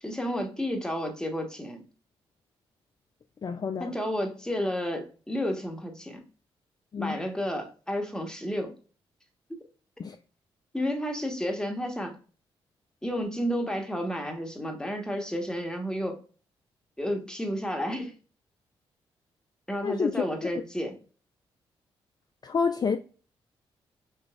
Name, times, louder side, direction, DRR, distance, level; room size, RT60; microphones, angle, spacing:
voice 1, 0.0-1.8 3.8-6.2 6.9-8.7 10.7-12.2 13.0-16.2 17.0-18.1 19.7-21.0, equal, 5° left, 1.2 m, -31 dB
voice 2, 3.4-3.9 6.9-7.2 10.0-10.2 19.8-20.2 22.4-23.0, left 5 dB, 35° left, 0.4 m, -28 dB
5.0 x 3.1 x 2.3 m
hypercardioid pair, 40°, 12 cm